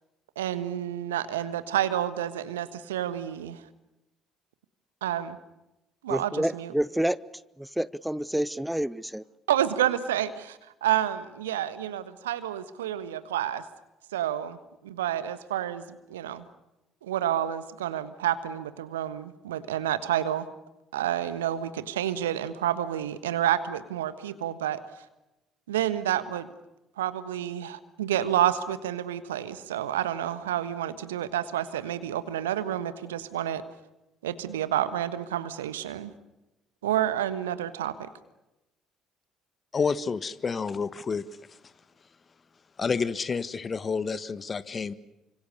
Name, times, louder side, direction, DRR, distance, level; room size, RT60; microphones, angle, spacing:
voice 1, 0.4-3.6 5.0-5.4 6.0-6.7 9.5-13.6 14.1-14.6 14.8-16.4 17.0-20.5 20.9-25.0 25.7-26.5 27.0-33.6 34.2-36.1 36.8-38.1, right 11 dB, 75° right, 13 dB, 1.4 m, -29 dB
voice 2, 6.1-7.2 7.6-9.2, right 1 dB, 5° right, 19 dB, 0.9 m, -28 dB
voice 3, 39.7-41.3 42.8-44.9, left 5 dB, 35° left, 15 dB, 1.5 m, -29 dB
28.5 x 26.0 x 6.8 m, 0.96 s
figure-of-eight pair, 50°, 0 cm